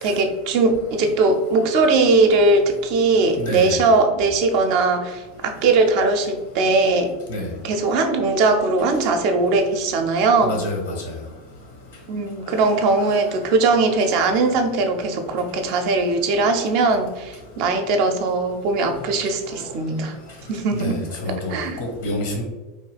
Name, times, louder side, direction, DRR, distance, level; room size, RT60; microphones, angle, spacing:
voice 1, 0.0-7.1 7.6-10.6 12.1-20.1 20.5-21.0 21.5-21.8, right 3 dB, 55° right, 5 dB, 0.4 m, -20 dB
voice 2, 3.4-3.7 7.3-7.5 10.4-10.9 20.7-21.0 21.2-22.4, left 1 dB, 70° left, 1 dB, 0.8 m, -27 dB
3.1 x 2.3 x 3.2 m, 1.1 s
figure-of-eight pair, 85°, 0 cm